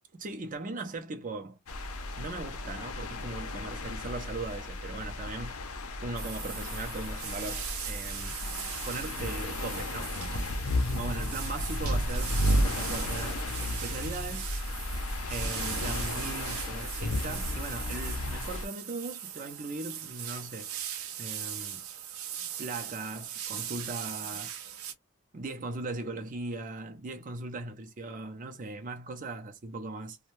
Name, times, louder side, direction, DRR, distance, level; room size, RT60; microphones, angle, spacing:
voice 1, 0.1-1.6 2.2-5.6 6.0-8.4 8.9-10.1 10.9-14.5 15.3-20.7 21.2-21.8 22.6-24.6 25.3-30.2, right 2 dB, 40° right, 0.6 m, -39 dB
sound 1, 1.7-18.7, left 1 dB, 85° left, 0.6 m, -33 dB
sound 2, 6.2-24.9, right 10 dB, 75° right, 0.7 m, -40 dB
2.6 x 2.2 x 3.1 m
head